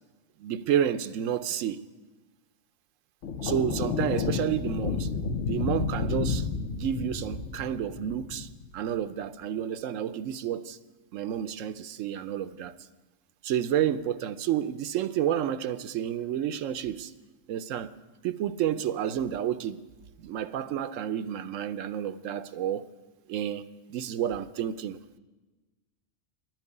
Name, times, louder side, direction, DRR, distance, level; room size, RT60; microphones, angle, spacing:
voice 1, 0.4-1.8 3.4-5.1 5.4-10.8 11.1-12.8 13.4-17.1 17.5-17.9 18.2-19.8 20.2-22.9 23.3-25.2, right 10 dB, 85° right, 1.0 m, -30 dB
sound 1, 3.2-8.8, left 5 dB, 70° left, 1.2 m, -31 dB
11.0 x 9.2 x 9.8 m
omnidirectional pair, 1.3 m